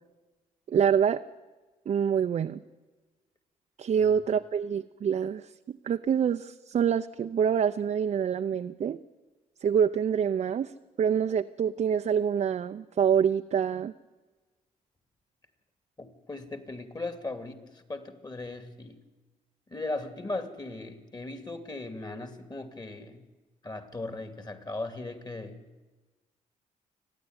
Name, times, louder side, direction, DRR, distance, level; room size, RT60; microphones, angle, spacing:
voice 1, 0.7-1.2 1.9-2.6 3.8-9.0 9.6-10.7 11.0-13.9, right 8 dB, 50° right, 7 dB, 0.7 m, -26 dB
voice 2, 16.0-19.0 19.7-23.2 23.6-25.6, left 2 dB, 25° left, 8 dB, 2.7 m, -38 dB
28.5 x 10.5 x 9.6 m, 1.3 s
cardioid pair, 75°, 15 cm